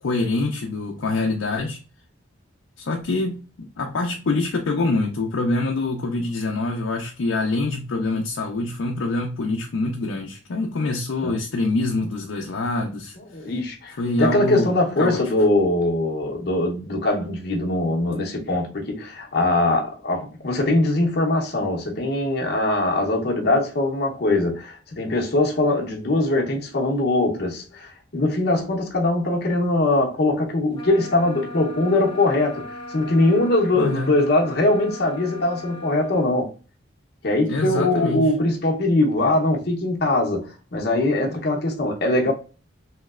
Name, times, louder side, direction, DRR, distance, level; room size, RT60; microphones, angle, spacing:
voice 1, 0.0-1.8 2.8-13.2 14.0-15.3 33.7-34.1 37.4-38.3, left 2 dB, 90° left, 0.5 m, -25 dB
voice 2, 13.3-36.5 37.2-42.3, left 2 dB, 55° left, 0.7 m, -22 dB
sound 1, 30.7-36.3, left 1 dB, 25° left, 0.5 m, -38 dB
3.1 x 2.8 x 2.3 m
head